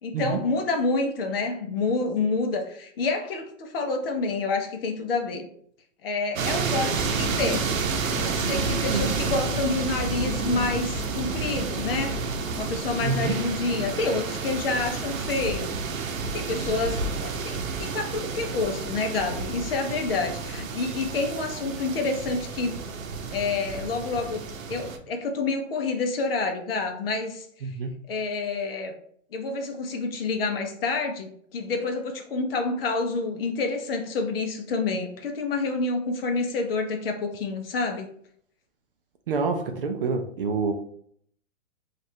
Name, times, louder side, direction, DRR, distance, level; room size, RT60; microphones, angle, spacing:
voice 1, 0.0-5.5 6.0-7.7 8.2-12.2 12.5-15.8 16.3-22.8 23.3-27.5 28.1-28.9 29.3-38.1, left 3 dB, 45° left, 4 dB, 0.6 m, -28 dB
sound 1, 6.4-25.0, right 5 dB, 75° right, 0.7 m, -31 dB
sound 2, 7.0-19.8, right 1 dB, 5° left, 1.4 m, -36 dB
voice 2, 13.0-13.4 27.6-28.0 39.3-40.7, right 4 dB, 45° right, 5 dB, 0.4 m, -27 dB
3.1 x 2.5 x 4.3 m, 0.64 s
hypercardioid pair, 165°, 40 cm